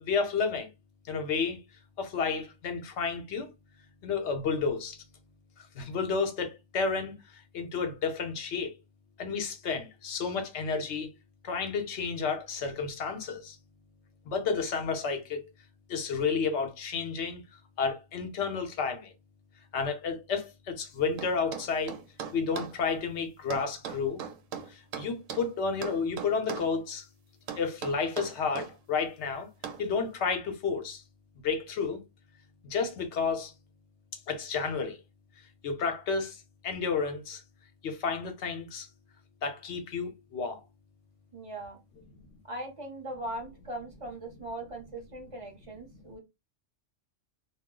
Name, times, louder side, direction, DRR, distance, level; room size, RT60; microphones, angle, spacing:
voice 1, 0.1-0.7 1.1-1.6 2.0-3.5 4.0-5.0 5.8-7.1 7.5-8.7 9.2-11.1 11.4-13.6 14.3-15.5 15.9-17.4 17.8-19.1 19.7-22.0 22.3-24.2 25.0-27.0 27.6-29.5 29.8-31.0 31.4-32.0 32.6-33.5 34.3-35.0 35.6-36.4 36.6-37.4 37.8-38.9 39.4-40.6, left 5 dB, 65° left, 1.0 m, -31 dB
sound 1, 21.2-22.8 23.5-25.5 25.8-26.7 27.5-28.7 29.6-29.9, right 7 dB, 90° right, 0.9 m, -39 dB
voice 2, 41.3-41.8 42.4-46.2, right 1 dB, 35° right, 0.7 m, -40 dB
2.4 x 2.0 x 3.6 m
omnidirectional pair, 1.3 m